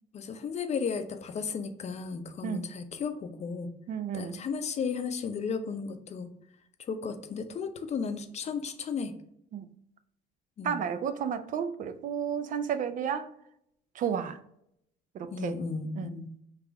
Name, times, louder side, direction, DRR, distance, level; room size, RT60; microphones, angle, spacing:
voice 1, 0.1-3.7 4.1-6.3 6.8-9.1 10.6-10.8 15.3-16.3, left 5 dB, 40° left, 0.6 m, -34 dB
voice 2, 3.9-4.4 9.5-9.7 10.6-13.3 13.9-14.4 15.1-15.6 15.9-16.2, right 8 dB, 50° right, 0.5 m, -32 dB
3.9 x 2.9 x 4.6 m
cardioid pair, 110°, 17 cm